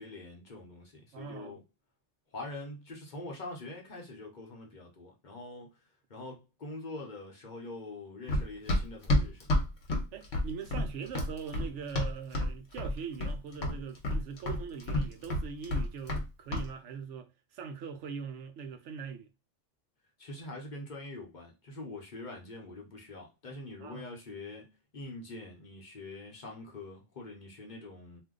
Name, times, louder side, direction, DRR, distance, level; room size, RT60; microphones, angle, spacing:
voice 1, 0.0-1.6 2.3-5.7 6.1-9.6 20.2-28.2, left 2 dB, 45° left, 0.8 m, -44 dB
voice 2, 1.1-1.6 10.1-19.3 23.8-24.1, right 6 dB, 75° right, 0.9 m, -42 dB
Run, 8.3-12.5 12.8-13.4 13.6-16.2 16.5-16.7, left 1 dB, 75° left, 1.1 m, -29 dB
2.6 x 2.2 x 3.6 m
omnidirectional pair, 1.3 m